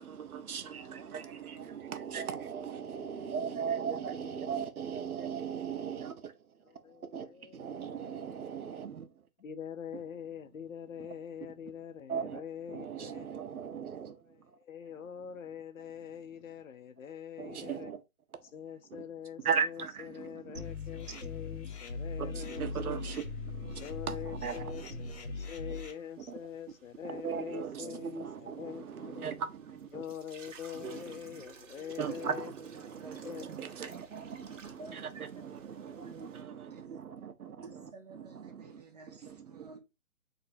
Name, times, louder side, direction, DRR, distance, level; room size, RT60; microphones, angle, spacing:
voice 1, 0.0-6.3 6.9-9.1 11.0-11.1 12.1-12.4 12.7-14.2 17.4-18.0 18.9-19.0 19.4-20.7 21.1-21.5 22.2-25.0 25.7-25.8 26.2-26.4 27.0-30.0 30.7-31.4 32.0-37.8 38.1-38.8 39.2-39.7, right 7 dB, 75° right, 1.0 m, -38 dB
voice 2, 6.6-8.0 9.4-13.3 14.3-17.9 18.5-23.1 23.8-29.3 29.9-32.5 33.1-33.4 37.5-37.6, left 8 dB, 65° left, 0.7 m, -44 dB
sound 1, 20.5-25.9, left 4 dB, 50° left, 1.2 m, -40 dB
sound 2, 20.6-36.4, right 5 dB, 55° right, 1.2 m, -55 dB
voice 3, 32.9-33.3 34.2-34.3 34.6-35.4 35.8-37.0 37.6-39.8, right 3 dB, 30° right, 0.7 m, -53 dB
3.8 x 2.6 x 4.4 m
hypercardioid pair, 165°, 44 cm